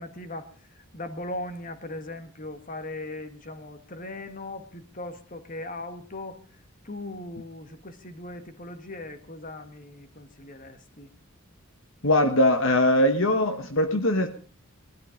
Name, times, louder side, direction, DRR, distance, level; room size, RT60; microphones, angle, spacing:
voice 1, 0.0-6.4 6.8-11.1, left 2 dB, 40° left, 9 dB, 1.8 m, -39 dB
voice 2, 12.0-14.3, left 1 dB, 60° left, 7 dB, 1.3 m, -21 dB
19.5 x 13.0 x 5.1 m, 0.42 s
head